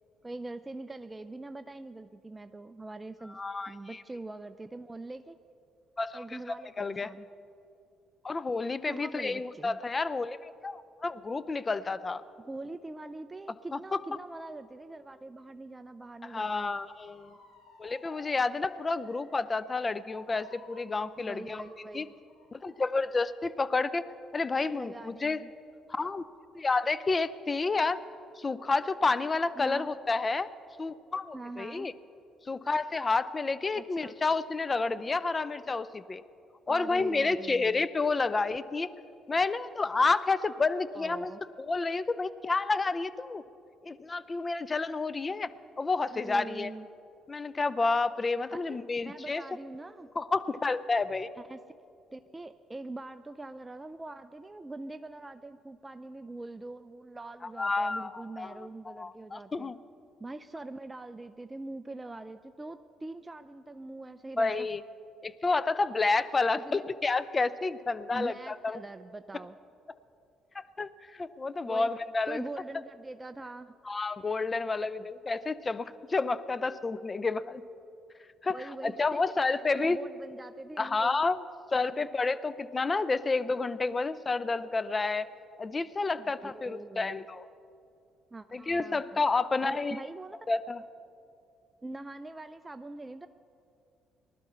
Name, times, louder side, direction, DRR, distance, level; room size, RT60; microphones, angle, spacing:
voice 1, 0.2-3.4 3.7-5.4 6.1-7.3 8.9-9.8 12.4-16.7 21.2-22.2 24.6-25.5 29.6-29.9 31.3-31.9 33.8-34.1 36.7-37.9 40.9-41.4 46.1-46.9 48.5-50.1 51.4-51.6 52.1-59.7 60.2-64.7 66.7-66.9 68.1-69.6 71.6-71.9 72.3-73.8 78.5-79.2 79.7-81.2 86.2-87.3 88.3-89.2 89.6-90.4 91.8-93.3, right 2 dB, 20° right, 10 dB, 0.4 m, -43 dB
voice 2, 3.3-4.0 6.0-7.1 8.2-12.2 13.7-14.0 16.2-17.4 17.8-21.6 21.9-22.1 22.5-24.0 24.3-25.4 25.9-26.2 26.5-28.0 28.4-30.5 30.8-31.9 32.4-36.2 36.7-38.9 39.3-41.3 41.6-43.4 43.8-46.7 47.3-49.4 50.2-51.3 57.6-59.8 64.4-64.8 65.2-68.8 70.5-72.4 73.9-77.6 78.4-80.0 80.8-81.4 81.7-85.3 85.6-87.4 88.5-90.0 90.5-90.8, left 3 dB, 30° left, 16 dB, 0.5 m, -30 dB
Motor vehicle (road) / Siren, 16.7-25.6 26.0-26.4, left 2 dB, 75° left, 3.7 m, -56 dB
19.5 x 12.0 x 4.3 m, 2.6 s
supercardioid pair, 65°, 0 cm